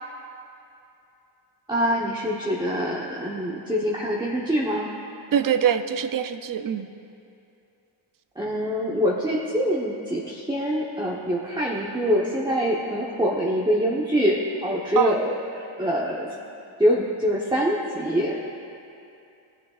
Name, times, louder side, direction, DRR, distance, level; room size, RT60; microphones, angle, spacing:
voice 1, 1.7-4.9 8.4-16.3 16.8-18.3, equal, 10° right, -5 dB, 1.1 m, -24 dB
voice 2, 5.3-6.9 15.0-15.2, right 9 dB, 45° right, 9 dB, 0.6 m, -23 dB
18.5 x 6.8 x 2.5 m, 2.7 s
cardioid pair, 60°, 47 cm